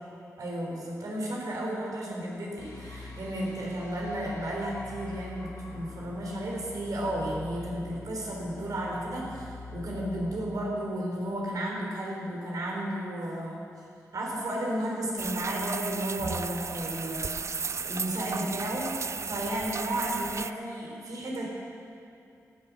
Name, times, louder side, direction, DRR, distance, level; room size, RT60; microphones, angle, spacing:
voice 1, 0.4-13.6 14.1-17.3 17.8-21.5, right 1 dB, 70° right, -2 dB, 3.8 m, -33 dB
sound 1, 2.6-11.7, left 3 dB, 65° left, 3.8 m, -45 dB
sound 2, 15.2-20.5, right 5 dB, 50° right, 0.4 m, -35 dB
15.0 x 9.7 x 6.3 m, 2.4 s
cardioid pair, 45°, 6 cm